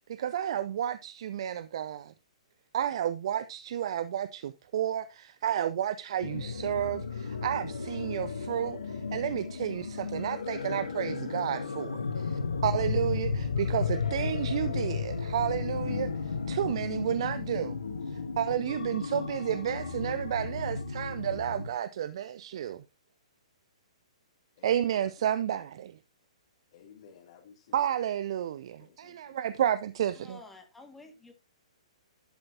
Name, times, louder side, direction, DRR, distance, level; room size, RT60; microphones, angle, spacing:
voice 1, 0.1-2.1 2.7-17.8 18.4-22.8 24.6-26.0 27.7-30.4, right 10 dB, 50° right, 0.5 m, -31 dB
sound 1, 6.2-21.7, left 5 dB, 70° left, 1.1 m, -34 dB
voice 2, 24.6-25.1 25.4-25.5 26.7-28.0 28.8-29.4, left 7 dB, 50° left, 2.6 m, -56 dB
voice 3, 30.2-31.3, left 3 dB, 5° left, 1.9 m, -51 dB
11.5 x 7.7 x 2.7 m
figure-of-eight pair, 120°, 4 cm